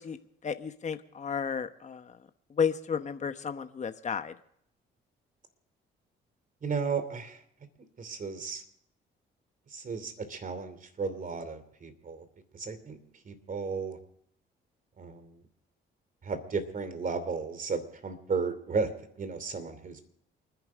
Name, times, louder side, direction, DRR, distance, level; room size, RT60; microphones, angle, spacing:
voice 1, 0.0-4.3, left 6 dB, 35° left, 9 dB, 1.0 m, -33 dB
voice 2, 6.6-7.4 8.0-8.6 9.7-12.2 12.5-13.0 13.2-14.0 15.0-15.3 16.2-18.9 19.2-20.0, right 5 dB, 45° right, 11 dB, 2.8 m, -34 dB
28.5 x 10.5 x 3.6 m, 0.71 s
cardioid pair, 90°, 20 cm